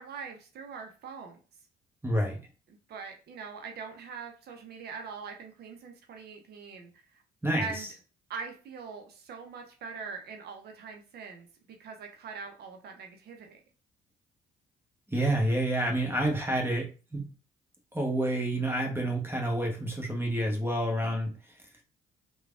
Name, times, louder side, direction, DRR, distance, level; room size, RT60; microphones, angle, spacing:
voice 1, 0.0-1.4 2.7-7.2 7.6-7.9 8.3-11.5 11.8-13.6, right 5 dB, 55° right, 3 dB, 0.6 m, -42 dB
voice 2, 2.0-2.4 7.4-7.7 15.1-17.3 17.9-21.3, right 1 dB, 10° right, 1 dB, 0.9 m, -28 dB
3.1 x 2.2 x 2.4 m, 0.35 s
hypercardioid pair, 50°, 20 cm